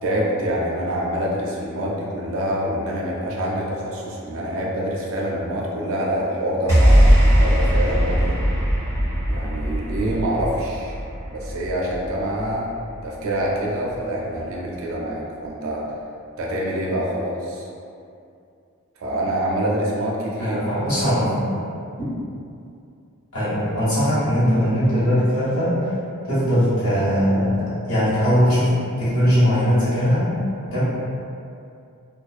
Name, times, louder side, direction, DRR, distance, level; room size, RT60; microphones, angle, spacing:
voice 1, 0.0-8.4 9.3-11.0 11.3-12.7 13.0-15.9 16.4-17.7 19.0-20.6, right 1 dB, 65° right, -4 dB, 0.4 m, -26 dB
sound 1, 6.7-13.1, equal, 10° left, 1.0 m, -19 dB
voice 2, 20.4-21.6 23.3-25.9 26.3-30.3 30.7-30.8, equal, 75° left, -12 dB, 1.3 m, -20 dB
2.4 x 2.2 x 2.4 m, 2.5 s
head